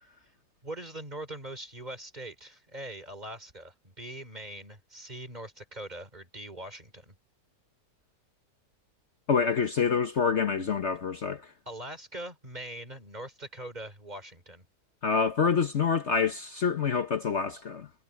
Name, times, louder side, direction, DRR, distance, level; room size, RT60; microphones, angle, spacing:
voice 1, 0.6-7.2 11.7-14.7, right 1 dB, 25° right, 3.6 m, -42 dB
voice 2, 9.3-11.5 15.0-17.9, left 6 dB, 50° left, 1.3 m, -27 dB
omnidirectional pair, 1.7 m